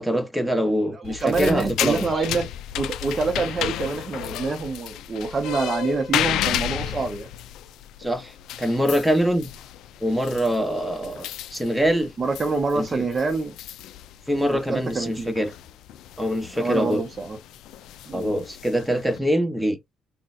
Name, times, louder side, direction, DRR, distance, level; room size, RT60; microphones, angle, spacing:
voice 1, 0.0-2.0 8.0-9.5 10.0-11.3 11.5-12.1 12.7-13.0 14.3-15.5 16.2-17.0 18.1-19.8, equal, 5° right, 1.0 m, -24 dB
voice 2, 0.9-7.3 11.0-11.2 12.2-13.5 14.5-15.3 16.5-17.4 18.1-18.3, right 4 dB, 35° right, 0.7 m, -26 dB
sound 1, 1.0-19.2, left 12 dB, 85° left, 0.3 m, -33 dB
3.7 x 2.3 x 2.6 m
cardioid pair, 90°, 0 cm